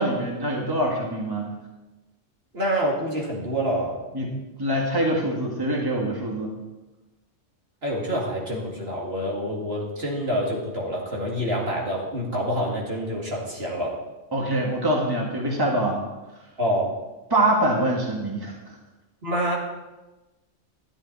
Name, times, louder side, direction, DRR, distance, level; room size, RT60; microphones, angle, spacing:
voice 1, 0.0-1.5 4.1-4.3 4.6-6.6 14.3-16.0 17.3-18.7, right 1 dB, 20° right, -1 dB, 1.8 m, -24 dB
voice 2, 2.5-4.0 7.8-14.0 16.6-16.9 19.2-19.6, equal, 55° right, -3 dB, 2.5 m, -27 dB
12.5 x 10.5 x 4.1 m, 1.1 s
omnidirectional pair, 1.2 m